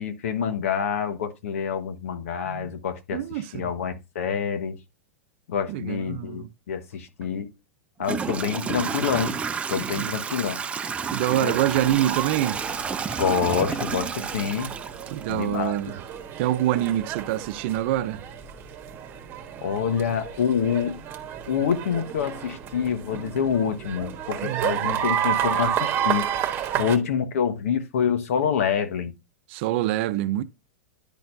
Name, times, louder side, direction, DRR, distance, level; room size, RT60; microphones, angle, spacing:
voice 1, 0.0-4.8 5.5-7.5 8.0-9.3 9.7-10.6 11.4-11.5 13.2-14.7 15.3-15.7 19.6-21.0 21.5-26.3 26.8-29.1, left 7 dB, 75° left, 1.4 m, -26 dB
voice 2, 3.1-3.7 5.7-6.5 10.0-10.1 11.1-12.6 15.1-16.0 16.4-18.2 24.4-24.9 26.7-26.9 29.5-30.4, right 13 dB, 55° right, 0.7 m, -26 dB
Toilet flush / Trickle dribble, 7.2-7.3 8.0-15.8, right 6 dB, 15° right, 0.6 m, -31 dB
sound 1, 11.7-27.0, right 10 dB, 30° right, 1.3 m, -31 dB
10.5 x 4.3 x 2.7 m
hypercardioid pair, 125°, 8 cm